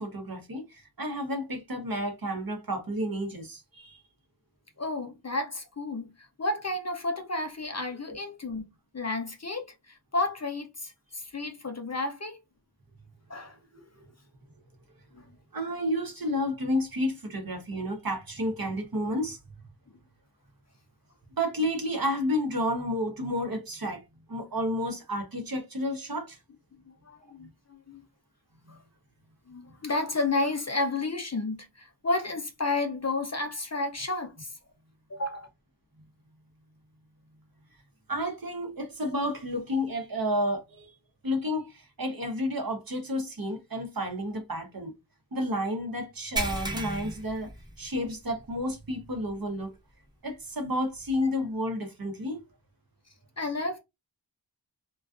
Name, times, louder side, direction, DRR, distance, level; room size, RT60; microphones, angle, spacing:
voice 1, 0.0-4.0 8.1-8.2 14.0-14.1 15.5-19.4 21.4-24.0 24.3-26.4 28.7-28.8 38.1-40.9 41.2-44.9 45.3-47.5 47.8-49.7 50.2-52.4, equal, 50° right, 0.8 m, -31 dB
voice 2, 4.8-8.7 8.9-12.4 13.3-13.9 15.1-15.4 27.0-28.1 28.7-28.8 29.5-34.5 35.1-35.5 53.4-53.8, left 2 dB, 35° left, 0.5 m, -32 dB
sound 1, 46.4-48.2 48.6-48.8 49.3-49.4 51.0-51.1, right 2 dB, 10° right, 0.8 m, -34 dB
2.4 x 2.3 x 2.4 m
wide cardioid pair, 50°, 46 cm